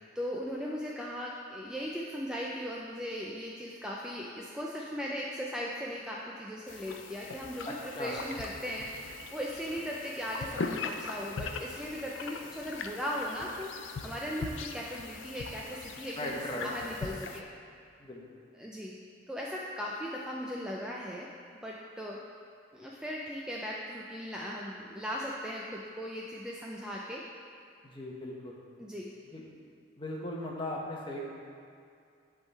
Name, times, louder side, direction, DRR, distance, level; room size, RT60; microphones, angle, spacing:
voice 1, 0.0-17.5 18.5-18.9 19.3-21.3 21.6-22.2 22.7-27.2 28.8-29.1, equal, 5° right, -4 dB, 0.4 m, -38 dB
sound 1, 6.7-17.4, left 4 dB, 90° left, 0.5 m, -41 dB
voice 2, 7.6-8.1 16.2-16.7 18.0-18.4 27.8-28.6 29.3-29.4 30.0-31.2, left 1 dB, 25° left, -2 dB, 0.9 m, -38 dB
10.5 x 3.6 x 4.1 m, 2.4 s
head